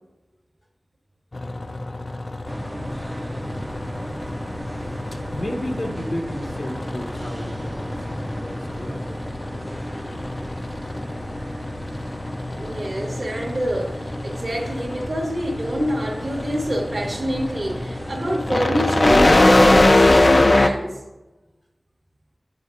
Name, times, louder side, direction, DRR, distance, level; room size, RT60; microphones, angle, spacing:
sound 1, 1.3-20.7, left 2 dB, 50° left, 0.4 m, -23 dB
sound 2, 2.5-18.5, right 1 dB, 15° right, 0.4 m, -35 dB
voice 1, 4.8-9.1, left 1 dB, 75° left, -1 dB, 1.2 m, -33 dB
voice 2, 12.5-21.0, equal, 55° right, -3 dB, 0.9 m, -26 dB
9.2 x 5.3 x 2.4 m, 1.1 s
wide cardioid pair, 65°, 0 cm